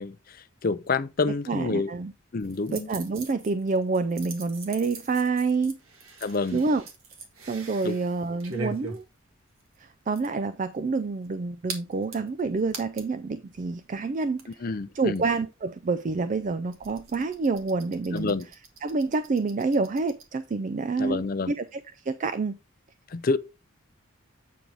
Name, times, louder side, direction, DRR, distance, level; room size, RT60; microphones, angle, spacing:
voice 1, 0.0-1.9 2.3-2.9 6.2-6.6 7.8-8.0 14.6-15.2 18.1-18.5 21.0-21.5 23.1-23.4, left 4 dB, 40° left, 0.5 m, -28 dB
voice 2, 1.5-2.1 2.7-5.8 6.5-6.8 7.5-9.0 9.8-14.4 14.9-18.3 18.8-22.6, right 4 dB, 35° right, 0.3 m, -28 dB
sound 1, 2.4-13.2 13.6-13.7 13.9-20.2, right 3 dB, 80° right, 1.8 m, -43 dB
8.4 x 4.6 x 3.9 m
head